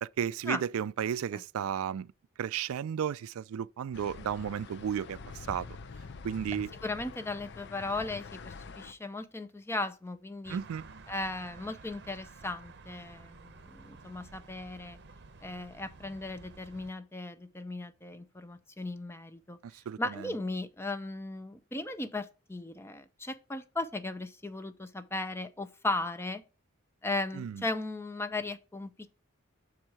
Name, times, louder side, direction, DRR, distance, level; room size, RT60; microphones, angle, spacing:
voice 1, 0.0-2.1 2.4-5.2 5.5-5.7 6.2-6.7 10.5-10.8 19.6-20.2 27.4-27.6, right 8 dB, 85° right, 0.3 m, -33 dB
sound 1, 3.9-8.9, left 4 dB, 55° left, 0.5 m, -46 dB
voice 2, 6.8-10.6 11.1-15.0 15.4-19.6 20.0-26.4 27.0-28.9, left 2 dB, 10° left, 0.5 m, -37 dB
sound 2, 10.4-16.9, right 4 dB, 55° right, 0.7 m, -52 dB
6.3 x 4.5 x 4.7 m
head